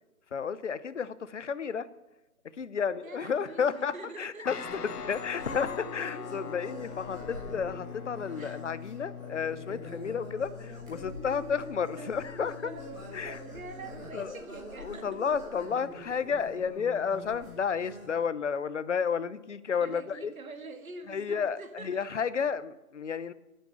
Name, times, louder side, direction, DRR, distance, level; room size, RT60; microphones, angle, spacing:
voice 1, 0.3-1.9 2.5-4.6 4.8-12.7 13.1-13.4 14.1-14.4 14.8-20.3 21.1-23.3, left 6 dB, 50° left, 16 dB, 0.8 m, -32 dB
voice 2, 3.0-4.5 8.4-8.7 12.0-12.1 12.6-15.4 19.8-22.3, right 3 dB, 60° right, 8 dB, 1.8 m, -46 dB
Guitar, 4.4-14.3, left 7 dB, 80° left, 1.0 m, -43 dB
sound 1, 4.5-18.1, equal, 5° right, 0.8 m, -45 dB
sound 2, 4.8-6.7, left 5 dB, 25° left, 1.5 m, -61 dB
9.1 x 8.9 x 9.2 m, 0.99 s
figure-of-eight pair, 160°, 46 cm